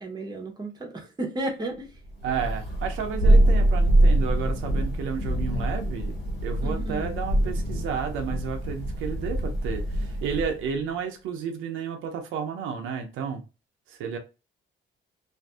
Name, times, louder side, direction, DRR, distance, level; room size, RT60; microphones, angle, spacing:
voice 1, 0.0-1.9 6.6-7.2, right 2 dB, 20° right, 0.8 m, -33 dB
Thunder, 2.2-10.6, right 1 dB, 55° left, 1.5 m, -24 dB
voice 2, 2.2-6.1 6.4-13.4 13.9-14.2, right 6 dB, 85° right, 0.6 m, -32 dB
2.5 x 2.5 x 2.3 m
cardioid pair, 90°, 20 cm